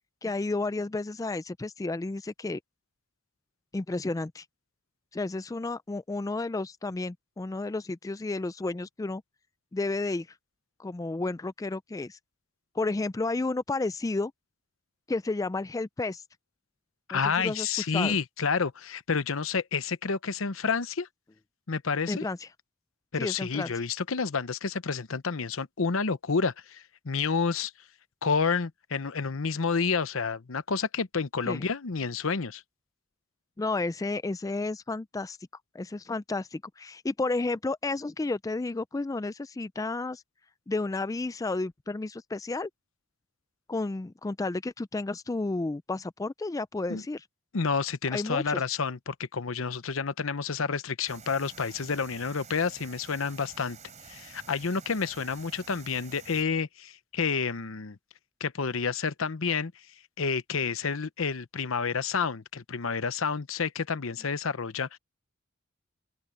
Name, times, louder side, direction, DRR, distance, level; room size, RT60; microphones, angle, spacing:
voice 1, 0.2-2.6 3.7-4.4 5.1-9.2 9.7-10.3 10.8-12.2 12.7-14.3 15.1-16.2 17.1-17.7 17.9-18.2 22.1-22.5 23.2-23.7 31.5-31.7 33.6-35.4 35.7-40.2 40.7-42.7 43.7-47.2 48.1-48.6, left 3 dB, 15° left, 0.3 m, -32 dB
voice 2, 17.1-21.1 21.7-22.2 23.1-27.7 28.2-32.6 46.9-47.0 47.5-53.8 54.1-58.0 58.4-59.7 60.2-65.0, left 5 dB, 85° left, 0.9 m, -29 dB
sound 1, 51.1-56.4, right 6 dB, 35° right, 3.7 m, -49 dB
open air
head